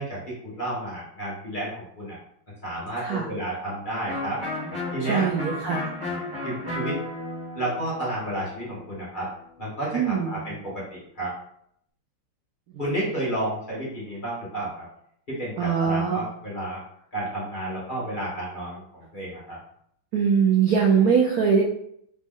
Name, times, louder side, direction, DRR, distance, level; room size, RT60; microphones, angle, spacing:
voice 1, 0.0-2.2 2.6-4.4 4.9-5.3 6.4-7.0 7.5-9.3 9.6-11.3 12.8-14.8 15.3-16.8 17.1-19.6, right 1 dB, 25° left, -7 dB, 1.3 m, -31 dB
Electric guitar, 4.1-9.7, left 2 dB, 15° right, 1.4 m, -34 dB
voice 2, 5.1-5.8 9.9-10.4 12.7-12.9 15.6-16.3 20.1-21.6, right 6 dB, 80° right, -1 dB, 0.8 m, -22 dB
4.1 x 3.0 x 3.7 m, 0.69 s
omnidirectional pair, 2.3 m